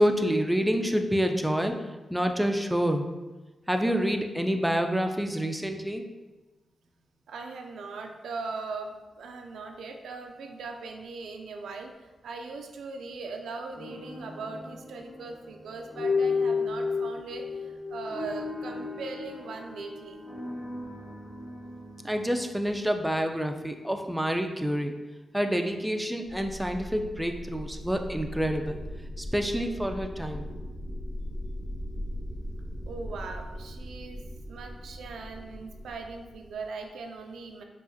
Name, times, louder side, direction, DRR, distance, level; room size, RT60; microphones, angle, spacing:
voice 1, 0.0-1.8 2.1-3.1 3.7-6.0 22.0-24.9 25.3-28.8 29.2-30.5, equal, 5° right, 5 dB, 0.4 m, -27 dB
voice 2, 7.3-20.2 32.9-37.6, right 4 dB, 85° right, 4 dB, 0.3 m, -40 dB
sound 1, 13.7-23.8, left 4 dB, 30° left, 0.8 m, -34 dB
sound 2, 26.2-36.9, equal, 80° left, 1.2 m, -39 dB
4.7 x 2.4 x 2.6 m, 1.2 s
cardioid pair, 60°, 0 cm